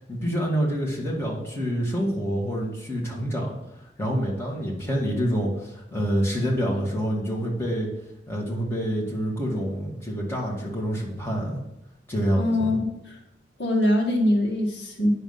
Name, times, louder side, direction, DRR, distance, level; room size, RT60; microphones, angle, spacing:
voice 1, 0.1-3.5 4.0-7.9 8.3-11.6 12.1-12.7, equal, 15° left, -3 dB, 2.2 m, -27 dB
voice 2, 12.4-12.9 13.6-15.1, left 1 dB, 75° left, 1 dB, 1.7 m, -22 dB
8.9 x 6.4 x 5.6 m, 0.84 s
head